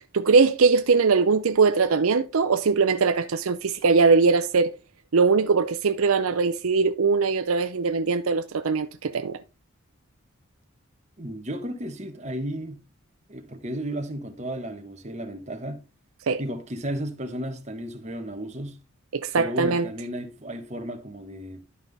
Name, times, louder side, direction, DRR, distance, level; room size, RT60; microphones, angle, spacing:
voice 1, 0.1-4.7 5.1-9.4 16.3-16.4 19.1-19.9, right 4 dB, 75° right, 0.5 m, -21 dB
voice 2, 11.2-12.8 13.3-15.8 16.4-18.8 19.3-21.6, right 1 dB, 30° right, 1.2 m, -34 dB
11.5 x 5.5 x 3.4 m
head